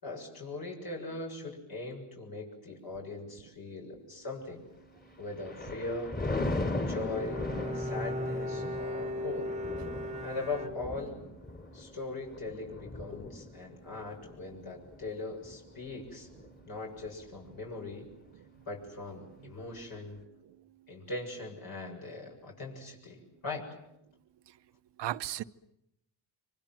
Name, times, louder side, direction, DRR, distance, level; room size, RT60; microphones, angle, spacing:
voice 1, 0.0-4.6 5.2-6.2 6.9-9.5 10.2-11.2 11.7-16.3 16.6-18.1 18.7-20.2 20.9-23.7, left 2 dB, 60° left, 0 dB, 7.3 m, -40 dB
Thunder, 5.0-16.5 17.0-17.3, left 2 dB, 20° left, 3.1 m, -38 dB
Bowed string instrument, 6.9-11.3, left 1 dB, 15° right, 1.3 m, -37 dB
voice 2, 25.0-25.4, right 13 dB, 90° right, 13 dB, 0.9 m, -36 dB
27.0 x 25.0 x 7.7 m, 0.82 s
cardioid pair, 100°, 40 cm